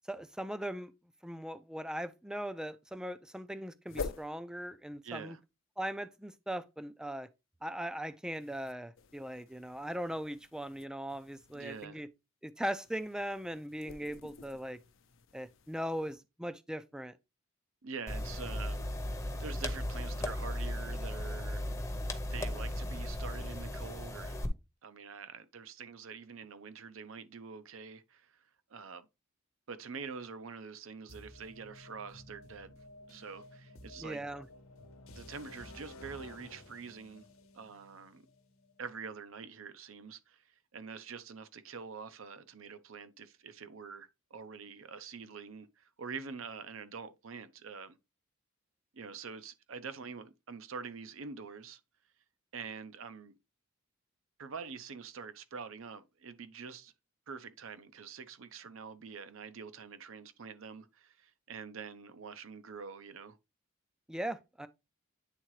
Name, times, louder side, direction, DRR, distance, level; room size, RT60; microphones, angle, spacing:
voice 1, 0.1-0.9 1.2-5.4 5.8-7.3 7.6-12.1 12.4-14.8 15.3-17.2 34.0-34.5 64.1-64.7, equal, 5° right, 0.3 m, -39 dB
sound 1, 3.9-4.3 8.3-11.8 12.8-16.1, left 4 dB, 65° left, 0.6 m, -47 dB
voice 2, 5.0-5.4 11.5-12.0 17.8-18.8 19.4-21.7 22.3-24.4 24.8-28.4 28.7-29.1 29.7-32.8 33.1-34.4 35.1-37.3 37.5-38.2 38.8-48.0 48.9-51.8 52.5-53.3 54.4-56.9 57.3-63.4, right 5 dB, 70° right, 0.6 m, -46 dB
sound 2, 18.1-24.5, left 1 dB, 15° left, 0.7 m, -36 dB
sound 3, 31.1-39.0, left 1 dB, 80° left, 0.9 m, -53 dB
9.0 x 3.7 x 3.1 m
head